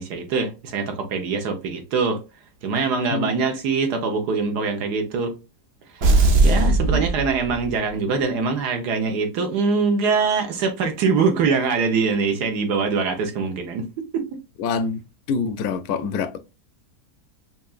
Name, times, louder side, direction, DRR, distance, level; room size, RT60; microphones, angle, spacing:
voice 1, 0.0-2.2 2.6-5.4 5.9-6.0 6.4-13.9 14.1-14.4, right 4 dB, 75° right, 1.5 m, -23 dB
sound 1, 6.0-7.9, right 2 dB, 55° right, 0.7 m, -18 dB
voice 2, 14.6-15.0 15.3-16.4, left 5 dB, 75° left, 1.0 m, -25 dB
5.7 x 2.4 x 2.4 m
omnidirectional pair, 1.7 m